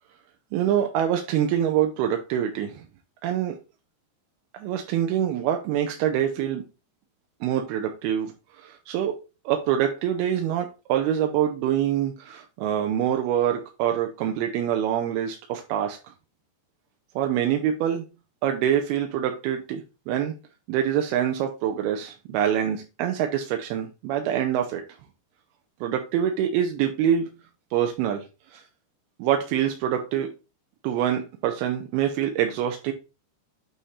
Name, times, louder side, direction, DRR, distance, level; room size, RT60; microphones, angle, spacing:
voice 1, 0.5-2.8 3.2-3.6 4.6-6.6 7.4-8.3 8.6-9.1 9.5-16.0 17.2-18.1 18.4-19.8 20.1-20.3 20.7-24.8 25.8-27.3 27.7-28.2 28.5-28.6 29.2-30.3 30.8-32.9, right 10 dB, 80° right, 4 dB, 2.4 m, -25 dB
8.5 x 3.7 x 4.1 m, 0.28 s
omnidirectional pair, 5.1 m